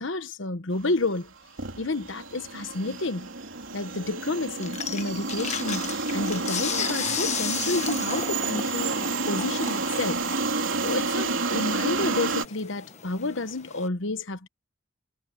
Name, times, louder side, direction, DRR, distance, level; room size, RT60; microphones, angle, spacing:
voice 1, 0.0-1.3 1.8-3.3 3.7-10.3 10.8-14.5, left 2 dB, 65° left, 1.2 m, -30 dB
sound 1, 1.1-1.3 1.6-12.5, right 3 dB, 75° right, 3.3 m, -30 dB
sound 2, 4.6-13.9, left 8 dB, 35° left, 1.3 m, -35 dB
head